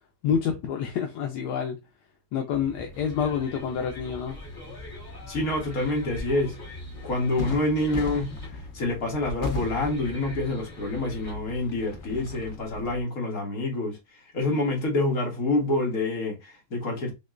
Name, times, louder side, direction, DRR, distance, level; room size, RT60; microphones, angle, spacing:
voice 1, 0.2-1.8 2.3-4.4, left 7 dB, 80° left, 1.2 m, -28 dB
sound 1, 2.5-13.0, left 2 dB, 15° left, 1.0 m, -43 dB
sound 2, 4.3-12.5, left 3 dB, 40° left, 0.8 m, -39 dB
voice 2, 5.3-6.6 7.0-14.0 14.3-17.1, left 2 dB, 60° left, 1.8 m, -27 dB
6.0 x 2.2 x 2.4 m
omnidirectional pair, 1.8 m